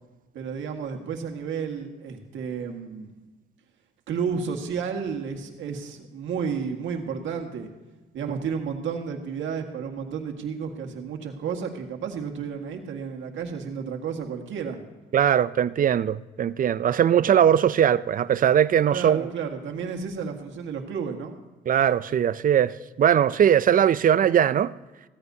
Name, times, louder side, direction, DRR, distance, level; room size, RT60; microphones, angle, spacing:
voice 1, 0.3-3.1 4.1-7.7 8.1-14.8 18.9-21.3, right 6 dB, 75° right, 1.8 m, -32 dB
voice 2, 15.1-19.3 21.7-24.7, right 9 dB, 45° right, 0.5 m, -20 dB
16.5 x 14.0 x 2.8 m
cardioid pair, 90°, 20 cm